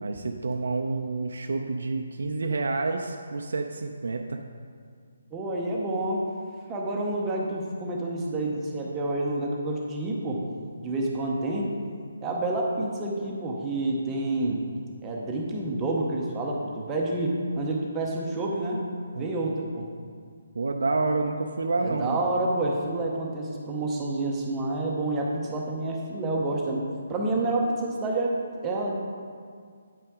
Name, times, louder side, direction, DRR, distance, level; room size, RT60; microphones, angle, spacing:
voice 1, 0.0-4.4 19.1-19.3 20.5-22.2, right 3 dB, 75° right, 4 dB, 0.5 m, -28 dB
voice 2, 5.3-6.3 6.7-10.4 10.8-11.7 12.2-14.6 15.0-18.8 19.2-19.9 21.8-28.9, right 2 dB, 15° right, -2 dB, 0.7 m, -28 dB
8.6 x 5.7 x 3.6 m, 2.1 s
hypercardioid pair, 170°, 0 cm